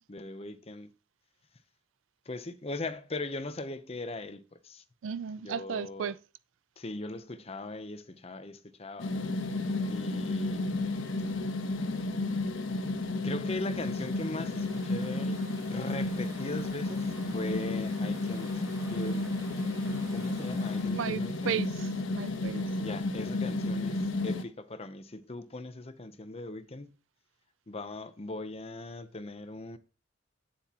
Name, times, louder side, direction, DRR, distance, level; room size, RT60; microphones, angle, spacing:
voice 1, 0.1-0.9 2.3-4.8 5.4-6.1 6.8-9.1 9.9-10.7 13.2-15.4 15.7-18.6 18.9-19.3 20.1-21.6 22.4-22.5 22.8-26.9 27.7-29.8, left 2 dB, 30° left, 0.8 m, -39 dB
voice 2, 5.0-6.2 20.9-22.6, right 7 dB, 80° right, 0.4 m, -35 dB
sound 1, 9.0-24.4, left 2 dB, 80° left, 1.1 m, -32 dB
Stream / Ocean, 13.8-21.0, right 1 dB, 20° right, 2.3 m, -52 dB
9.4 x 7.8 x 2.9 m
head